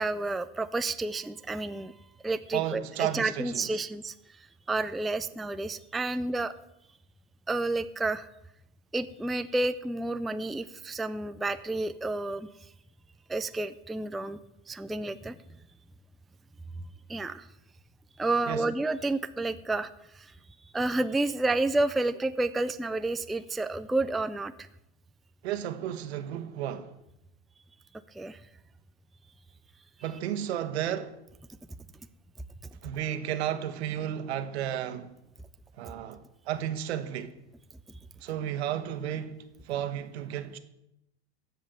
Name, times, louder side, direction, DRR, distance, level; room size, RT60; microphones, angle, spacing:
voice 1, 0.0-1.9 2.2-4.1 4.7-6.5 7.5-8.3 8.9-12.5 13.3-14.4 14.7-15.4 17.1-17.5 18.2-19.9 20.1-20.3 20.7-24.7 28.1-28.4, right 2 dB, ahead, 0.3 m, -30 dB
voice 2, 2.5-3.8 18.5-18.7 25.4-26.9 30.0-31.2 32.8-35.1 35.8-36.2 36.5-37.3 38.2-39.4 39.6-40.6, right 10 dB, 80° right, 1.4 m, -33 dB
14.0 x 5.6 x 8.0 m
hypercardioid pair, 105°, 32 cm